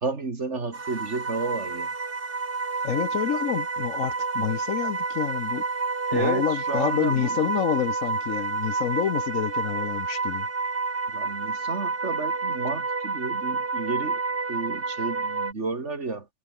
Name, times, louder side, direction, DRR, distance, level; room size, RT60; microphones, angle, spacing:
voice 1, 0.0-1.9 6.1-7.4 11.1-14.2 14.5-16.3, right 3 dB, 60° right, 3.0 m, -31 dB
sound 1, 0.7-15.5, right 4 dB, 45° right, 2.2 m, -29 dB
voice 2, 2.8-5.6 6.1-10.5, left 9 dB, 85° left, 1.4 m, -28 dB
omnidirectional pair, 1.3 m